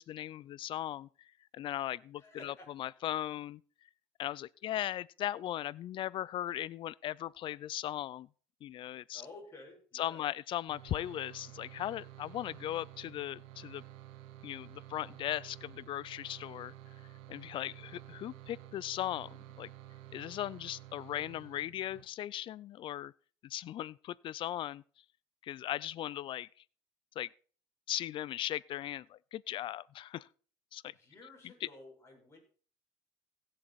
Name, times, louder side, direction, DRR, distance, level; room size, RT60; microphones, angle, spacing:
voice 1, 0.0-3.6 4.2-8.3 8.6-9.2 9.9-13.8 14.4-16.7 17.3-19.3 19.6-19.7 20.1-23.1 23.4-24.8 25.4-26.5 27.2-27.3 27.9-30.3 30.7-30.9 31.4-31.7, left 12 dB, 50° left, 0.5 m, -38 dB
voice 2, 2.2-2.7 9.1-10.2 30.9-32.4, left 2 dB, 25° left, 6.0 m, -52 dB
sound 1, 10.7-22.0, right 13 dB, 80° right, 1.6 m, -51 dB
16.5 x 7.6 x 4.2 m
cardioid pair, 105°, 11 cm